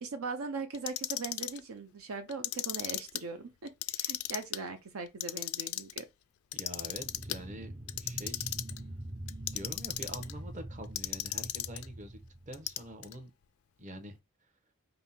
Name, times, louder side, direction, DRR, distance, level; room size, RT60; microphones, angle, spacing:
voice 1, 0.0-6.0, right 4 dB, 75° right, 0.6 m, -40 dB
Clock, 0.7-1.6 2.3-3.2 3.7-4.6 5.1-6.0 6.5-7.4 7.9-8.8 9.3-10.3 11.0-11.9 12.5-13.1, left 15 dB, 75° left, 0.4 m, -35 dB
voice 2, 6.5-8.5 9.5-12.2 12.5-13.3 13.8-14.5, right 1 dB, 35° right, 0.9 m, -45 dB
sound 1, 6.8-13.2, right 1 dB, 20° right, 0.5 m, -44 dB
5.4 x 2.1 x 4.2 m
head